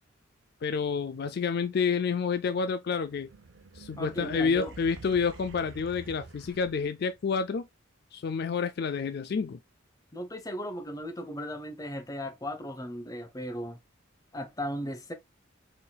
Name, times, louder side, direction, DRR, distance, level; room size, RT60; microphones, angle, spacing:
voice 1, 0.6-3.3 3.7-7.7 8.1-9.6, left 5 dB, 50° left, 0.3 m, -29 dB
sound 1, 3.0-7.2, right 3 dB, 65° right, 0.7 m, -48 dB
voice 2, 4.0-4.7 10.1-13.8 14.3-15.1, equal, 20° left, 0.7 m, -36 dB
4.0 x 3.8 x 2.3 m
head